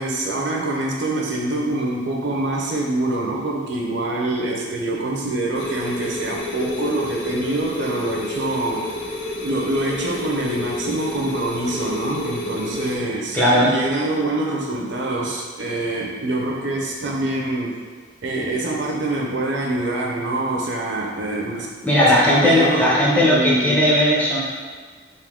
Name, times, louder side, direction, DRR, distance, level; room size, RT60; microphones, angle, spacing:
voice 1, 0.0-8.9 9.4-17.8 18.2-21.7 22.0-23.8, right 2 dB, 60° right, -1 dB, 0.6 m, -25 dB
sound 1, 5.5-13.0, left 2 dB, 60° left, 0.6 m, -30 dB
voice 2, 13.3-13.7 21.8-24.4, equal, 10° left, -6 dB, 0.7 m, -17 dB
3.8 x 2.7 x 3.5 m, 1.5 s
head